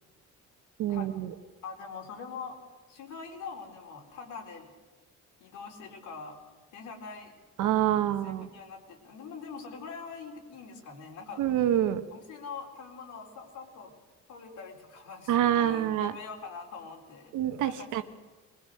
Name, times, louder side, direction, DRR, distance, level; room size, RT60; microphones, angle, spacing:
voice 1, 0.8-1.3 7.6-8.5 11.4-12.0 15.3-16.1 17.3-18.0, right 11 dB, 85° right, 9 dB, 1.3 m, -26 dB
voice 2, 1.6-2.6 2.9-4.7 5.4-6.4 6.7-7.3 8.1-11.4 12.1-13.9 14.3-17.3 17.6-18.0, left 5 dB, 80° left, 0 dB, 4.2 m, -43 dB
21.5 x 20.5 x 6.6 m, 1.3 s
cardioid pair, 125°, 30 cm